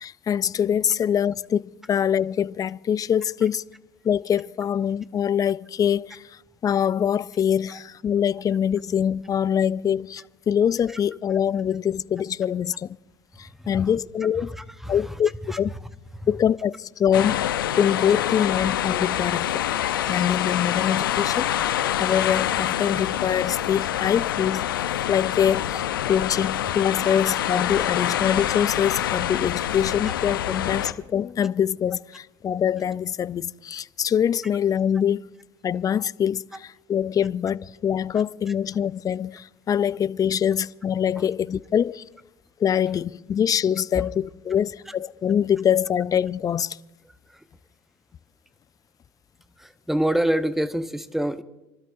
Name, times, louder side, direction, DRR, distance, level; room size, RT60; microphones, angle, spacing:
voice 1, 0.0-3.7 4.0-13.0 13.4-14.6 14.9-15.3 15.6-15.7 16.3-17.4 17.8-19.6 20.1-21.7 22.0-35.3 35.6-42.0 42.6-46.8, left 8 dB, 35° left, 0.4 m, -24 dB
voice 2, 13.4-13.9 14.4-15.2 15.5-15.6 16.1-16.3 24.0-24.1 30.1-30.2 41.2-41.3 44.0-44.1 44.9-45.0 47.3-47.4 49.6-51.4, right 1 dB, 5° right, 0.9 m, -28 dB
sound 1, 17.1-30.9, left 11 dB, 85° left, 0.6 m, -26 dB
29.5 x 12.5 x 2.6 m
hypercardioid pair, 75°, 11 cm